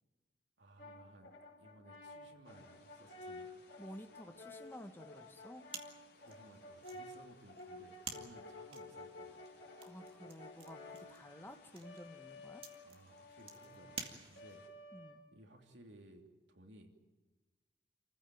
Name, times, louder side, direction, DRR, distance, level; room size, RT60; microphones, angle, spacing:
voice 1, 0.6-1.3 1.6-3.5 6.1-9.5 12.8-14.6 15.3-17.0, right 1 dB, 75° right, 3 dB, 3.0 m, -60 dB
Brass instrument, 0.8-15.6, left 2 dB, 85° left, 4.6 m, -53 dB
sound 1, 2.4-14.7, left 4 dB, 55° left, 4.1 m, -67 dB
voice 2, 3.8-5.6 9.8-12.6 14.9-15.2, equal, 10° left, 6 dB, 1.4 m, -52 dB
sound 2, 5.7-14.7, right 5 dB, 30° right, 2.2 m, -52 dB
28.0 x 15.0 x 9.3 m, 1.2 s
head